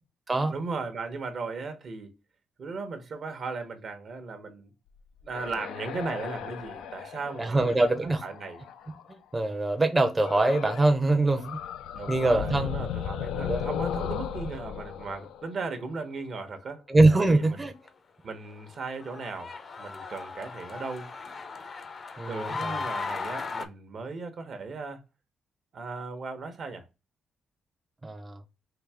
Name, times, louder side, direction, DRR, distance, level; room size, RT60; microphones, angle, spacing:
voice 1, 0.5-2.1 2.6-4.7 5.2-8.6 11.9-17.7 18.2-21.1 22.3-25.0 25.7-26.9, right 4 dB, 60° right, 0.9 m, -37 dB
sound 1, 5.0-9.1 10.2-11.0 11.3-16.1, left 8 dB, 85° left, 0.4 m, -36 dB
voice 2, 7.4-8.2 9.3-11.6 12.1-12.7 13.3-13.6 16.9-17.7 22.2-22.8 28.0-28.4, right 2 dB, 25° right, 0.6 m, -23 dB
sound 2, 17.1-17.6 17.9-18.0 18.5-23.7, left 4 dB, 45° left, 0.6 m, -37 dB
3.9 x 2.6 x 3.4 m
cardioid pair, 65°, 0 cm